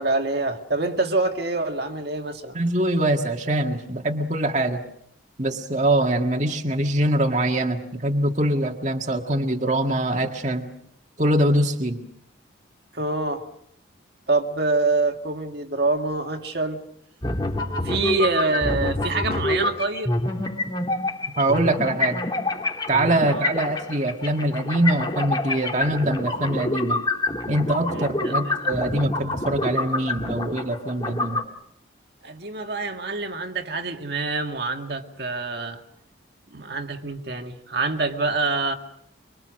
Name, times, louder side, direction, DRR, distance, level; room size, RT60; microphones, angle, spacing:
voice 1, 0.0-2.6 12.9-13.5 14.3-16.8 17.8-20.1 23.2-23.5 27.9-28.5 32.2-35.8 36.5-38.7, right 3 dB, 55° right, 4 dB, 2.0 m, -26 dB
voice 2, 2.5-4.8 5.4-10.7 11.2-12.0 21.4-22.2 22.9-27.0 27.5-31.4, right 1 dB, 35° right, 3 dB, 1.8 m, -23 dB
sound 1, 17.2-31.4, left 2 dB, 20° left, 2.6 m, -27 dB
25.0 x 24.5 x 6.4 m, 0.72 s
head